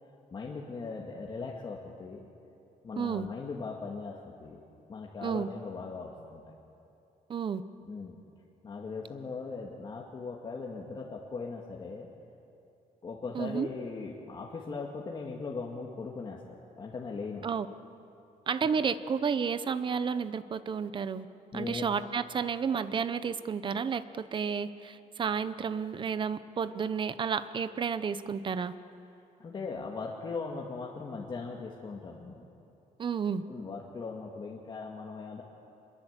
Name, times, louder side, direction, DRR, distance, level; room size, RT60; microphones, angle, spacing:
voice 1, 0.3-2.3 2.8-4.6 4.9-6.4 7.8-8.2 8.6-12.1 13.0-16.4 16.8-17.5 21.5-21.9 29.4-32.4 33.5-35.4, left 4 dB, 30° left, -2 dB, 2.0 m, -39 dB
voice 2, 3.0-3.3 5.2-5.5 7.3-7.6 13.3-13.7 17.4-17.7 18.5-21.3 21.5-28.7 33.0-33.4, right 6 dB, 35° right, 13 dB, 0.8 m, -31 dB
25.5 x 21.5 x 8.2 m, 2.7 s
cardioid pair, 155°, 14 cm